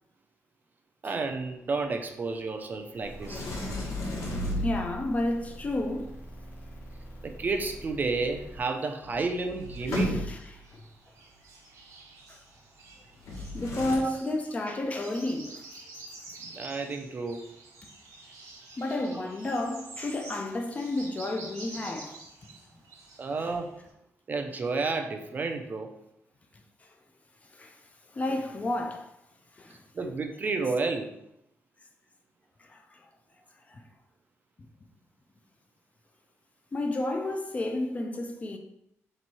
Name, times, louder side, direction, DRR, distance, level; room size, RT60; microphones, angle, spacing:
voice 1, 1.0-3.5 7.2-10.3 14.0-14.2 16.5-17.4 19.1-19.2 23.2-23.7 24.3-25.9 29.9-31.1, right 3 dB, 35° right, 0.4 m, -31 dB
sound 1, 3.0-8.6, right 1 dB, 50° left, 1.1 m, -45 dB
Sliding door, 3.2-5.2 8.7-8.8 9.0-10.6 13.2-14.0, left 1 dB, 90° left, 1.0 m, -33 dB
voice 2, 4.6-6.1 9.8-10.8 12.3-12.4 13.4-15.7 16.4-16.5 18.8-22.2 23.4-23.5 26.8-26.9 27.5-27.8 28.1-29.1 29.6-29.8 32.6-33.1 33.7-33.8 36.7-38.6, left 2 dB, 25° left, 0.4 m, -32 dB
sound 2, 9.6-23.9, right 2 dB, 90° right, 1.1 m, -49 dB
3.5 x 3.0 x 4.1 m
wide cardioid pair, 145°, 5 cm